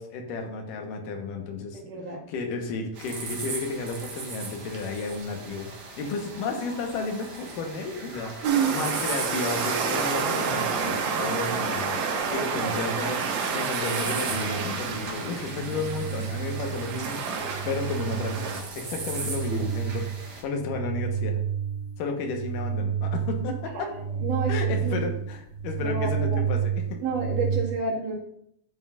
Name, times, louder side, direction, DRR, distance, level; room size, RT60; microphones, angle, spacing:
voice 1, 0.0-1.8 2.3-8.3 8.7-12.1 12.3-20.1 20.4-21.4 22.0-23.9 24.5-27.0, left 3 dB, 85° left, 3 dB, 2.7 m, -32 dB
voice 2, 1.9-2.2 8.4-8.8 12.4-12.8 19.6-19.7 23.7-24.5 24.8-25.1 25.8-26.4 27.0-28.2, right 5 dB, 70° right, -4 dB, 3.3 m, -29 dB
sound 1, 2.9-20.4, right 4 dB, 50° right, 1.2 m, -40 dB
sound 2, 8.4-18.6, right 5 dB, 90° right, 2.7 m, -30 dB
sound 3, 14.3-27.6, right 7 dB, ahead, 3.1 m, -31 dB
11.0 x 7.5 x 2.4 m, 0.74 s
omnidirectional pair, 3.8 m